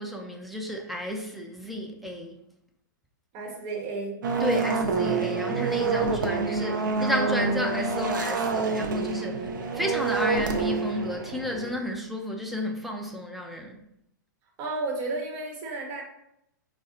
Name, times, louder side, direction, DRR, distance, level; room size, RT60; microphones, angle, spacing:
voice 1, 0.0-2.4 4.4-13.8, left 1 dB, ahead, 0.4 m, -32 dB
voice 2, 3.3-4.2 6.3-6.4 14.6-16.0, right 3 dB, 40° right, 1.0 m, -32 dB
sound 1, 4.2-11.7, right 4 dB, 75° right, 0.5 m, -27 dB
4.6 x 2.1 x 2.7 m
hypercardioid pair, 125°, 10 cm